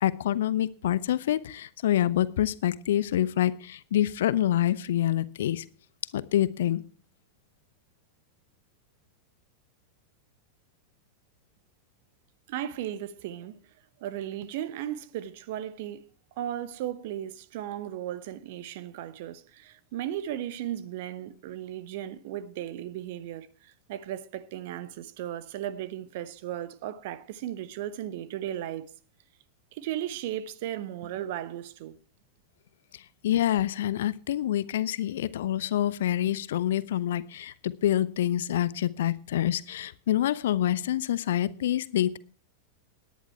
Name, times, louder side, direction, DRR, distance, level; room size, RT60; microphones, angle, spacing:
voice 1, 0.0-5.6 6.1-6.8 32.9-42.2, left 12 dB, 60° left, 0.8 m, -26 dB
voice 2, 12.5-13.6 14.0-16.1 16.4-28.9 29.7-32.0, right 11 dB, 50° right, 1.0 m, -36 dB
17.5 x 10.5 x 4.5 m
figure-of-eight pair, 90°, 0 cm